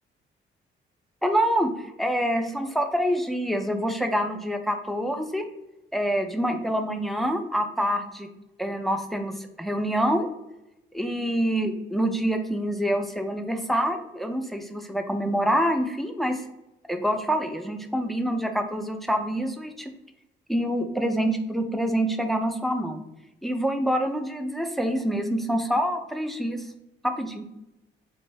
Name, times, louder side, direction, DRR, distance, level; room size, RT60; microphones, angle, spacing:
voice 1, 1.2-5.5 5.9-8.3 8.6-10.3 10.9-16.4 16.9-19.9 20.5-23.0 23.4-26.7 27.0-27.4, equal, ahead, 6 dB, 0.5 m, -26 dB
4.5 x 2.5 x 3.2 m, 0.90 s
cardioid pair, 90°, 20 cm